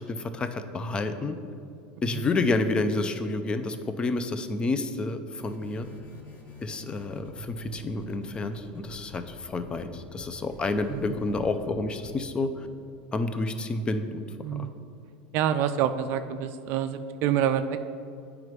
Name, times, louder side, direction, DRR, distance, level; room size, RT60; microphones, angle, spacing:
voice 1, 0.0-1.4 2.0-5.9 6.6-12.5 13.1-14.2 14.5-14.7, left 3 dB, 20° left, 9 dB, 0.4 m, -29 dB
sound 1, 5.4-12.2, equal, 40° left, 1.3 m, -46 dB
voice 2, 14.4-14.8 15.3-17.8, right 9 dB, 55° right, 10 dB, 0.3 m, -27 dB
9.2 x 4.9 x 3.2 m, 2.5 s
supercardioid pair, 120°, 5 cm